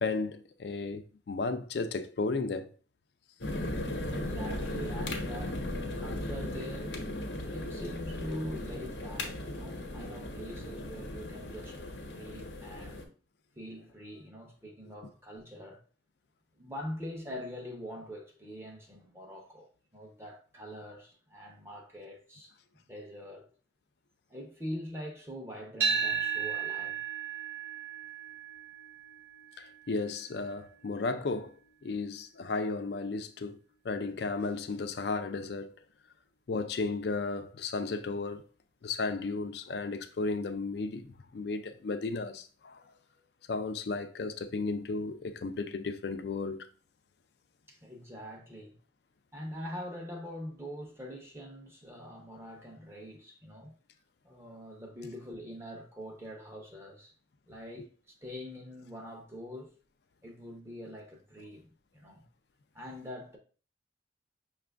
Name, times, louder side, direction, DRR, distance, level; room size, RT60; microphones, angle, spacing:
voice 1, 0.0-2.7 29.6-31.5 31.8-33.6 33.8-35.7 36.5-38.4 38.8-42.8 43.5-46.7, left 3 dB, 65° left, 0.4 m, -34 dB
sound 1, 3.4-13.0, left 1 dB, 85° left, 0.9 m, -37 dB
voice 2, 4.0-5.7 6.0-7.0 7.5-13.0 13.6-15.8 16.6-19.7 19.9-22.5 22.8-23.5 24.3-27.0 42.8-42.9 43.2-43.3 47.7-48.7 49.3-53.7 54.2-57.1 57.5-57.9 58.2-59.8 60.2-62.2 62.7-63.4, equal, 15° right, 0.7 m, -43 dB
sound 2, 25.8-34.0, right 7 dB, 60° right, 0.9 m, -36 dB
5.8 x 2.5 x 3.3 m
head